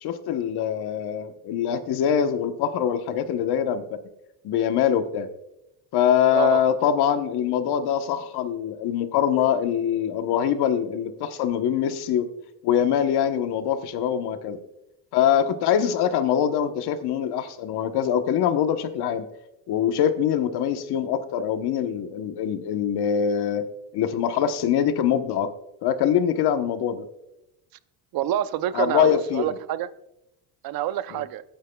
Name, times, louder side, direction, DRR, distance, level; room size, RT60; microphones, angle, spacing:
voice 1, 0.0-4.0 4.4-5.3 5.9-12.3 12.6-14.6 15.1-19.2 19.7-23.6 23.9-25.5 25.8-27.0 28.7-29.5 31.1-31.2, left 9 dB, 60° left, 8 dB, 1.2 m, -23 dB
voice 2, 28.1-29.9 30.6-31.4, right 12 dB, 55° right, 14 dB, 0.7 m, -27 dB
20.5 x 9.4 x 2.3 m, 0.87 s
cardioid pair, 125°, 43 cm